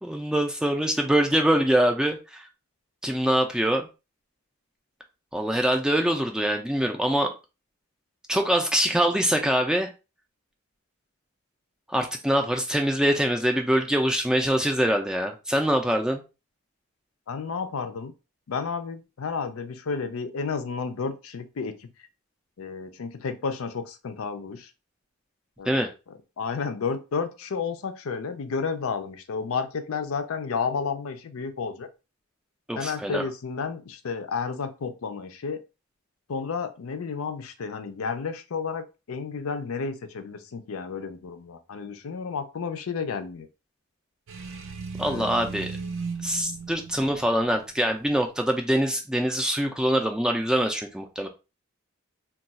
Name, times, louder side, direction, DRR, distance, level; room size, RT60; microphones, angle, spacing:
voice 1, 0.0-2.5 3.0-3.9 5.3-7.3 8.3-9.9 11.9-16.2 25.7-25.9 32.7-33.2 45.0-45.7 46.2-51.3, equal, 5° right, 3 dB, 0.3 m, -24 dB
voice 2, 17.3-18.1 18.5-21.9 22.6-24.7 25.6-25.8 26.4-31.9 32.7-35.6 36.3-43.5 45.0-45.4, left 5 dB, 75° left, 8 dB, 0.5 m, -31 dB
sound 1, 44.3-48.2, right 4 dB, 65° right, 0.5 m, -36 dB
2.3 x 2.3 x 4.0 m, 0.29 s
head